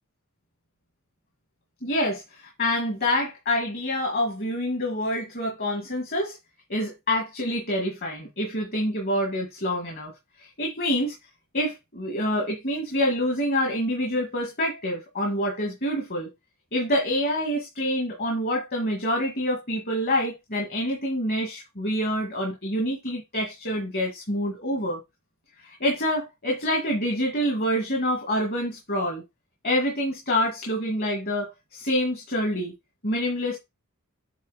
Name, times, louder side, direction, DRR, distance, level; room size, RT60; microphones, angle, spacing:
voice 1, 1.8-6.4 6.7-10.1 10.4-11.2 11.5-16.3 16.7-25.0 25.6-29.2 29.6-32.7 33.0-33.6, equal, 45° left, 1.8 m, -27 dB
8.1 x 2.8 x 4.8 m
head